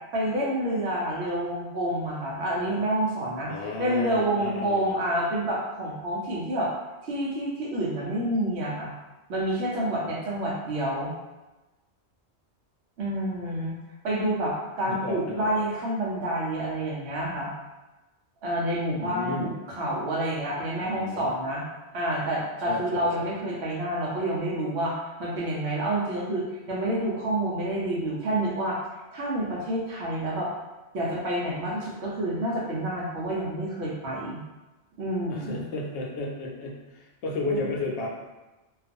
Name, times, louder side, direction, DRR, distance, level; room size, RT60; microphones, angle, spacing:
voice 1, 0.1-6.7 7.0-8.9 9.3-11.1 13.0-13.7 14.0-17.5 18.4-21.6 21.9-28.8 29.1-30.5 30.9-34.4 35.0-35.6 37.6-37.7, right 1 dB, 75° right, -4 dB, 0.9 m, -28 dB
voice 2, 3.5-4.9 14.8-15.6 19.0-19.5 20.8-21.3 22.7-23.3 35.3-38.1, left 3 dB, 75° left, -2 dB, 0.9 m, -33 dB
2.4 x 2.3 x 2.5 m, 1.1 s
omnidirectional pair, 1.2 m